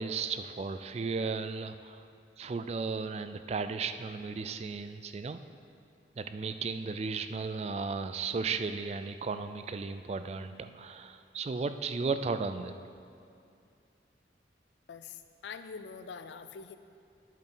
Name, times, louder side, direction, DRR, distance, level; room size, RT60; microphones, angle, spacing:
voice 1, 0.0-2.1 2.4-5.4 6.2-12.8, right 4 dB, 35° right, 10 dB, 0.3 m, -35 dB
voice 2, 14.9-16.8, left 5 dB, 85° left, 10 dB, 0.5 m, -44 dB
10.0 x 7.3 x 3.9 m, 2.5 s
head